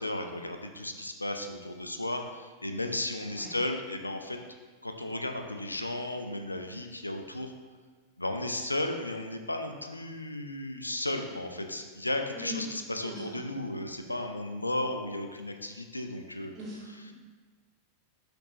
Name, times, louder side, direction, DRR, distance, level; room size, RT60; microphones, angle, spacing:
voice 1, 0.0-4.4 4.8-7.5 8.2-16.5, left 1 dB, 85° left, 5 dB, 0.6 m, -34 dB
voice 2, 13.0-13.4 16.6-17.1, equal, 30° right, -6 dB, 2.2 m, -41 dB
8.1 x 6.3 x 3.1 m, 1.4 s
figure-of-eight pair, 90°, 0 cm